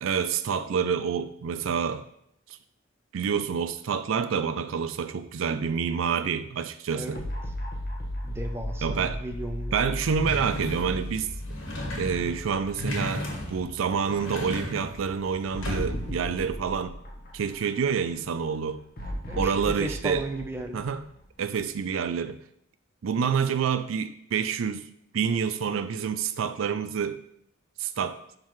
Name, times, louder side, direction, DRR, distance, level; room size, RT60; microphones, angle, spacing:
voice 1, 0.0-2.0 2.5-2.6 3.1-7.2 8.8-9.2 9.7-11.3 12.0-17.0 17.3-18.8 19.3-20.3 20.7-21.0 21.4-22.4 23.0-24.9 25.1-27.2 27.8-28.2, right 6 dB, 80° right, 0.4 m, -28 dB
voice 2, 6.9-7.2 8.2-9.7 19.3-20.8, right 1 dB, 10° right, 0.7 m, -35 dB
sound 1, 7.1-13.5 13.9-14.0 15.5-18.0 19.0-21.7, equal, 50° left, 1.4 m, -36 dB
sound 2, 10.2-16.2, left 1 dB, 75° left, 1.9 m, -35 dB
11.5 x 3.8 x 3.1 m
head